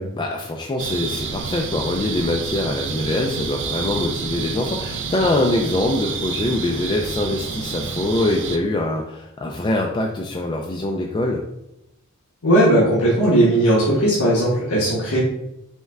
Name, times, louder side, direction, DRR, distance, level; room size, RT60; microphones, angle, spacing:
voice 1, 0.1-11.4, left 2 dB, 20° left, 0 dB, 0.3 m, -23 dB
sound 1, 0.8-8.6, right 5 dB, 60° right, 0.4 m, -29 dB
voice 2, 12.4-15.2, right 1 dB, 90° left, -7 dB, 1.1 m, -17 dB
5.4 x 2.2 x 3.4 m, 0.85 s
head